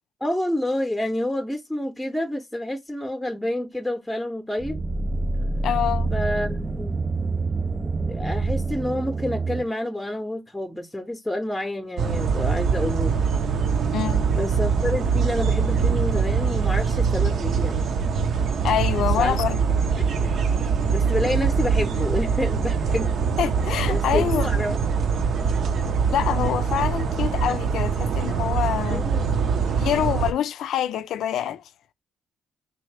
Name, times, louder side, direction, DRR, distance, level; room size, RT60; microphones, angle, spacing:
voice 1, 0.2-4.8 6.1-7.0 7.8-13.2 14.3-17.9 19.0-19.4 20.0-20.3 20.9-23.1 23.9-24.9 28.9-29.2, left 1 dB, 5° left, 0.7 m, -29 dB
sound 1, 4.6-9.7, right 3 dB, 20° right, 0.4 m, -27 dB
voice 2, 5.6-6.1 13.9-14.2 18.6-19.8 23.4-24.5 26.1-29.1 29.7-31.7, left 10 dB, 75° left, 0.4 m, -26 dB
sound 2, 12.0-30.3, right 5 dB, 65° right, 0.6 m, -23 dB
3.5 x 2.8 x 3.2 m
cardioid pair, 90°, 0 cm